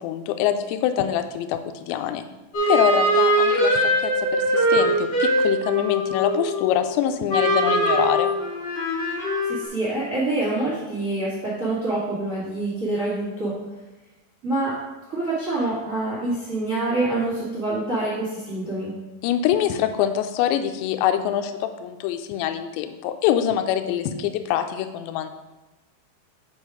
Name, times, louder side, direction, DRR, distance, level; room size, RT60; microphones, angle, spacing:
voice 1, 0.0-2.2 2.7-8.3 19.2-25.3, left 10 dB, 85° left, 7 dB, 2.6 m, -24 dB
sound 1, 2.5-6.9 7.3-9.7, equal, 35° left, 2.2 m, -22 dB
voice 2, 9.4-13.5 14.4-14.7 15.1-18.9, right 2 dB, 70° right, -8 dB, 0.7 m, -26 dB
6.3 x 5.3 x 4.9 m, 1.1 s
omnidirectional pair, 5.6 m